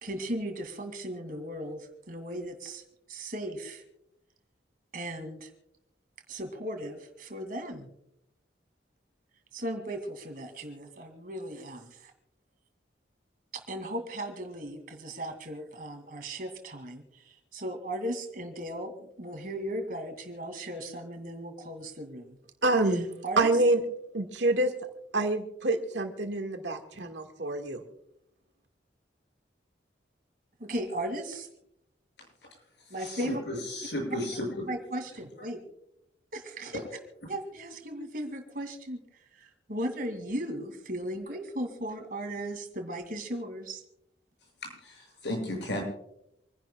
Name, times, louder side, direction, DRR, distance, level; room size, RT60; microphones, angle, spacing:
voice 1, 0.0-2.8 3.1-3.8 4.9-5.5 6.3-7.9 9.5-12.1 13.5-22.4 23.2-23.6 30.6-31.5 32.9-33.4 34.7-35.6 36.3-36.8 37.3-39.0 39.3-43.8, right 1 dB, 50° right, 6 dB, 2.4 m, -37 dB
voice 2, 22.6-23.1 23.4-23.8 24.1-24.7 25.1-27.8, right 2 dB, 85° right, 4 dB, 1.8 m, -26 dB
voice 3, 33.0-34.6 44.6-45.8, left 1 dB, 75° left, 0 dB, 6.6 m, -34 dB
28.0 x 11.0 x 2.3 m, 0.80 s
head